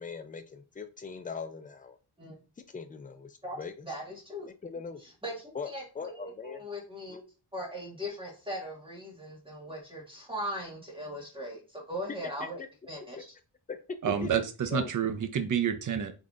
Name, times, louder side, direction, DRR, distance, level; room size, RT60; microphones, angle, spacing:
voice 1, 0.0-2.0 2.7-3.9 4.6-5.0 5.5-5.7 5.9-6.6 7.1-7.2 12.4-12.7 13.2-13.3 13.7-13.8 14.2-14.3 14.7-14.9, left 5 dB, 20° left, 8 dB, 0.3 m, -40 dB
voice 2, 3.8-4.5 5.2-7.2 7.5-12.6 12.9-13.3, equal, 10° right, -2 dB, 1.5 m, -39 dB
voice 3, 14.0-16.1, right 8 dB, 45° right, 8 dB, 0.5 m, -29 dB
3.9 x 3.2 x 2.4 m, 0.33 s
wide cardioid pair, 130°, 44 cm